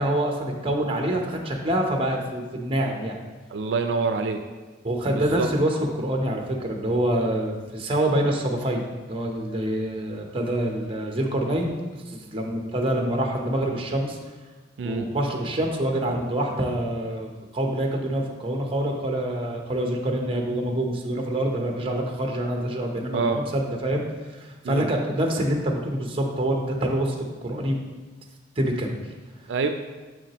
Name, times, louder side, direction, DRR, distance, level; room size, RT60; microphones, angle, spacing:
voice 1, 0.0-3.2 4.8-8.8 9.1-14.2 14.8-24.0 24.3-27.2 27.4-27.8 28.6-28.9, right 1 dB, 30° right, 2 dB, 0.8 m, -26 dB
voice 2, 3.5-4.4 5.1-5.5 14.8-15.1 23.1-23.4 24.6-24.9 29.5-29.7, right 4 dB, 80° right, 6 dB, 0.4 m, -26 dB
6.7 x 6.0 x 2.9 m, 1.3 s
head